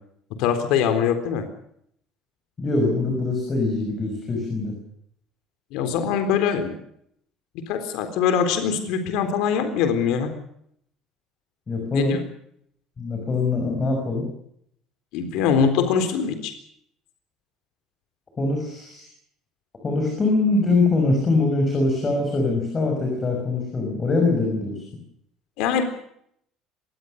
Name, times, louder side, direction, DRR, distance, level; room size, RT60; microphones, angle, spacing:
voice 1, 0.4-1.4 5.7-6.7 7.7-10.3 11.9-12.2 15.1-16.5 25.6-25.8, left 7 dB, 65° left, 8 dB, 3.9 m, -22 dB
voice 2, 2.6-4.7 11.7-12.2 13.0-14.3 18.4-19.1 19.8-24.8, left 3 dB, 20° left, 2 dB, 6.1 m, -23 dB
24.5 x 19.5 x 6.6 m, 0.70 s
cardioid pair, 170°, 0 cm